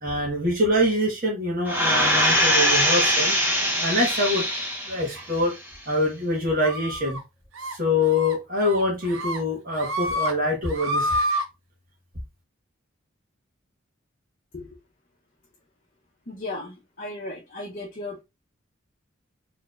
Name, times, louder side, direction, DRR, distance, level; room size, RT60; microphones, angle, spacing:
voice 1, 0.0-3.3 3.8-4.4 4.9-5.5 5.9-7.2 7.7-11.1, left 1 dB, 45° right, 1.4 m, -24 dB
sound 1, 1.7-5.1 5.5-5.6, equal, 10° right, 0.8 m, -22 dB
sound 2, 6.6-7.2 7.6-7.8 8.1-8.3 8.7-9.4 9.7-10.3 10.6-11.4, equal, 80° right, 0.9 m, -28 dB
voice 2, 16.3-18.2, left 2 dB, 40° left, 0.9 m, -36 dB
4.3 x 3.2 x 2.5 m
head